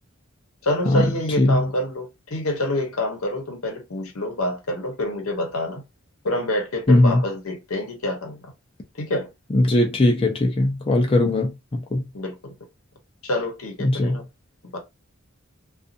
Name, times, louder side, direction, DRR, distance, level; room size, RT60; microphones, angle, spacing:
voice 1, 0.6-5.8 6.2-8.5 9.0-9.3 12.1-12.5 13.2-14.2 14.6-14.8, left 1 dB, 85° left, 0.9 m, -27 dB
voice 2, 6.9-7.2 9.5-12.0 13.8-14.2, left 1 dB, 25° left, 0.5 m, -19 dB
2.6 x 2.4 x 2.5 m
head